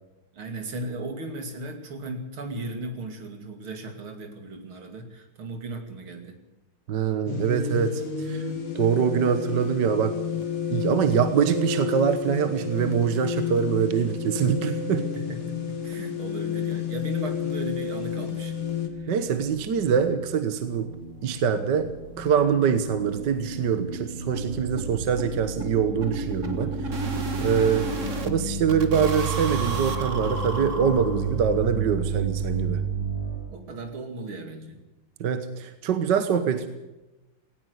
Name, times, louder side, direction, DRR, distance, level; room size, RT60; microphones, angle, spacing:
voice 1, 0.3-6.4 15.1-18.5 19.0-19.1 27.5-27.8 33.5-34.8, right 2 dB, 75° right, 6 dB, 3.5 m, -36 dB
voice 2, 6.9-8.4 8.8-10.2 10.7-15.0 19.1-20.9 21.2-21.9 22.2-26.9 27.4-27.9 28.2-32.8 35.2-36.7, right 7 dB, 60° right, 10 dB, 1.7 m, -24 dB
sound 1, 7.3-18.9, left 7 dB, 80° left, 3.1 m, -30 dB
sound 2, 17.0-33.4, right 4 dB, 45° left, 6.0 m, -33 dB
sound 3, 21.4-21.5 21.9-22.0 22.3-22.4 22.7-22.8 23.1-28.3 28.7-31.5, right 2 dB, 35° right, 1.9 m, -34 dB
18.5 x 18.0 x 8.0 m, 1.0 s
omnidirectional pair, 2.3 m